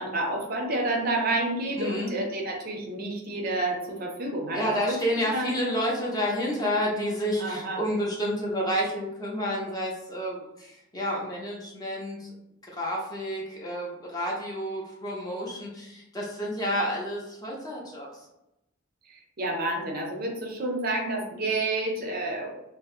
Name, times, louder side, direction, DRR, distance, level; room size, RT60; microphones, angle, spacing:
voice 1, 0.0-5.0 5.3-5.5 7.4-7.8 19.1-22.5, right 2 dB, 45° right, 0 dB, 0.5 m, -29 dB
voice 2, 1.8-2.1 4.5-12.3 12.7-18.3, equal, 20° left, -3 dB, 0.5 m, -30 dB
2.7 x 2.0 x 2.4 m, 0.89 s
head